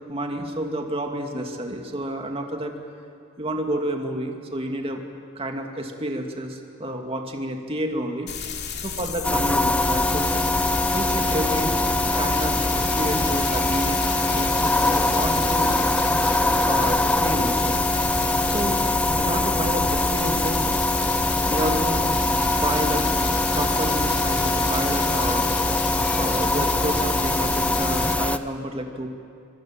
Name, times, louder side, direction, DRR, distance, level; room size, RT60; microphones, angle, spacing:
voice 1, 0.1-2.7 3.4-5.0 5.4-8.3 8.8-10.3 10.9-11.7 12.1-14.0 14.3-15.7 16.2-17.8 18.4-18.8 19.1-20.6 21.5-22.0 22.5-23.0 23.5-25.5 26.1-29.1, right 1 dB, 30° right, 3 dB, 2.4 m, -30 dB
sound 1, 8.3-28.1, left 5 dB, 55° left, 2.7 m, -32 dB
sound 2, 9.2-28.4, left 1 dB, 5° left, 0.5 m, -22 dB
24.5 x 24.0 x 7.6 m, 2.4 s
head